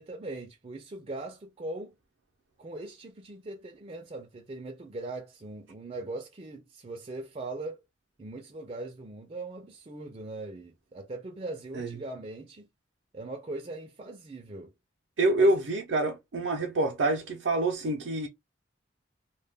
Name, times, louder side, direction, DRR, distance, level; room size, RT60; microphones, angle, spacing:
voice 1, 0.0-1.9 2.6-7.8 8.2-12.7 13.1-14.7 15.4-15.6, right 2 dB, 30° right, 0.4 m, -40 dB
voice 2, 15.2-18.3, right 2 dB, 85° right, 0.5 m, -26 dB
2.2 x 2.1 x 3.3 m
head